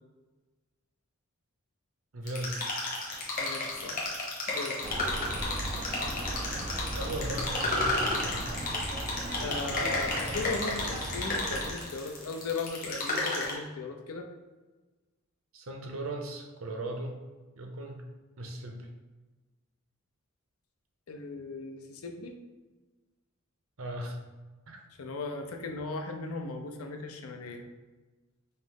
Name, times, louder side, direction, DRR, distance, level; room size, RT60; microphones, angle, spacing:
voice 1, 2.1-2.6 6.9-8.4 15.5-17.2 17.6-18.0 18.4-18.9 23.8-24.2 24.7-24.8, right 1 dB, 70° right, 2 dB, 0.7 m, -37 dB
sound 1, 2.3-13.5, left 2 dB, 40° left, 1.1 m, -32 dB
voice 2, 3.4-4.0 4.5-4.8 9.4-14.3 21.1-22.3 25.0-27.6, left 3 dB, 85° left, 4 dB, 0.6 m, -37 dB
sound 2, 4.8-11.7, right 1 dB, 30° right, 0.4 m, -37 dB
5.5 x 2.0 x 3.6 m, 1.2 s
head